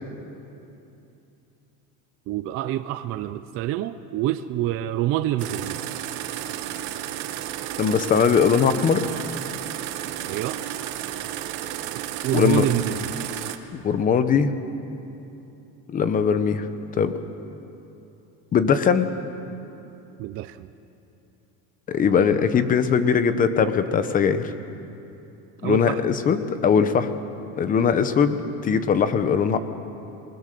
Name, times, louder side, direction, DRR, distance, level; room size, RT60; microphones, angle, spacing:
voice 1, 2.3-5.8 10.3-10.6 11.9-13.1 20.2-20.7 25.6-26.0, right 13 dB, 35° right, 10 dB, 0.5 m, -27 dB
sound 1, 5.4-13.6, right 12 dB, 65° right, 1.6 m, -32 dB
voice 2, 7.8-9.1 12.3-12.7 13.7-14.5 15.9-16.7 17.0-17.2 18.5-19.1 21.9-24.5 25.6-27.1 27.6-29.6, left 6 dB, 20° left, 11 dB, 0.8 m, -20 dB
28.0 x 20.0 x 6.7 m, 2.9 s
cardioid pair, 170°, 42 cm